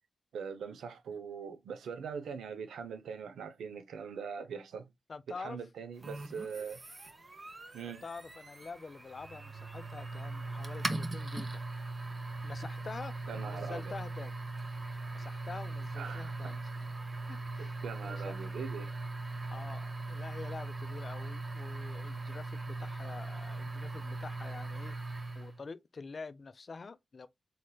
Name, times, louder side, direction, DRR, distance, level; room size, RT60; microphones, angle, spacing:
voice 1, 0.3-4.9 5.4-6.8 7.7-8.0 13.3-13.9 16.0-16.5 17.6-18.9, right 6 dB, 85° right, 0.4 m, -42 dB
voice 2, 5.1-5.6 7.8-11.6 11.9-12.0 12.4-13.1 13.4-14.4 15.1-16.7 17.3-18.4 19.5-27.3, left 4 dB, 55° left, 0.4 m, -46 dB
sound 1, 6.0-25.6, right 2 dB, 40° right, 0.8 m, -40 dB
3.2 x 2.8 x 2.2 m
supercardioid pair, 45°, 0 cm